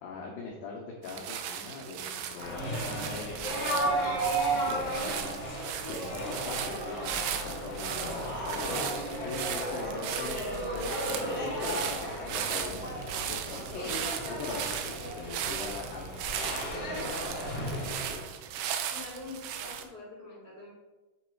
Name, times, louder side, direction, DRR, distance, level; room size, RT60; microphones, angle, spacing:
voice 1, 0.0-4.2 4.5-5.4 5.9-8.7 9.2-10.4 10.7-18.2, left 4 dB, 80° left, -2 dB, 2.0 m, -42 dB
Walking Through Leaves in the Fall, 1.0-19.8, right 9 dB, 80° right, 2.6 m, -37 dB
sound 1, 2.4-18.2, right 1 dB, 65° left, 0.8 m, -34 dB
voice 2, 18.9-20.7, left 3 dB, 40° right, -8 dB, 1.3 m, -45 dB
8.1 x 3.1 x 4.4 m, 1.2 s
omnidirectional pair, 4.9 m